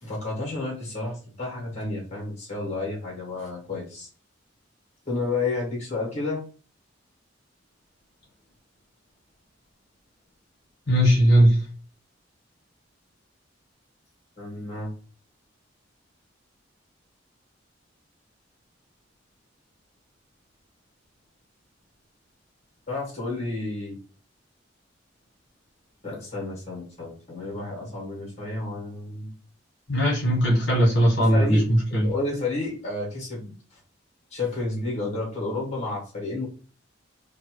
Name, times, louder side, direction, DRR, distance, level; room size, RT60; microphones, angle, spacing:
voice 1, 0.0-4.1 5.0-6.4 14.4-14.9 22.9-24.0 26.0-29.3 31.1-31.6 32.0-33.8 34.3-36.5, left 3 dB, 35° left, -1 dB, 1.5 m, -31 dB
voice 2, 10.9-11.6 29.9-32.0, equal, 65° left, -5 dB, 1.3 m, -19 dB
2.9 x 2.5 x 3.0 m, 0.38 s
head